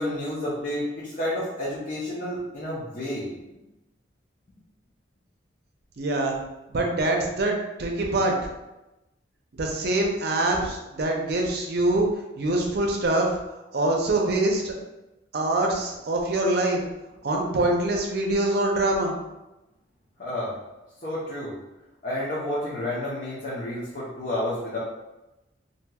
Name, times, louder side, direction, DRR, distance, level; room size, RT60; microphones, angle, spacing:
voice 1, 0.0-3.3 20.2-20.5 21.0-21.5 22.0-24.8, left 1 dB, 45° left, -8 dB, 0.7 m, -30 dB
voice 2, 6.0-6.4 6.7-8.3 9.5-12.1 12.4-13.3 13.7-14.7 15.3-16.8 17.2-19.1, right 2 dB, 60° right, 1 dB, 0.5 m, -24 dB
2.8 x 2.6 x 2.3 m, 0.98 s
head